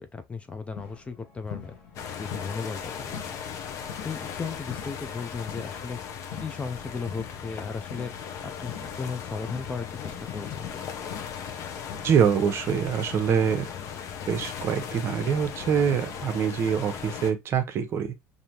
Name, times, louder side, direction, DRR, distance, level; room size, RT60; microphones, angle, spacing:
voice 1, 0.0-1.8 2.2-3.4 4.0-6.0 6.4-8.1 8.4-8.7 9.0-10.9, left 5 dB, 20° left, 0.5 m, -36 dB
sound 1, 0.7-7.6 7.9-12.4 12.7-16.4, left 7 dB, 80° left, 1.1 m, -45 dB
sound 2, 1.9-17.3, left 7 dB, 50° left, 0.8 m, -37 dB
voice 2, 12.0-13.7 14.3-18.1, right 7 dB, 40° right, 0.8 m, -25 dB
5.1 x 2.7 x 2.9 m
cardioid pair, 125°, 6 cm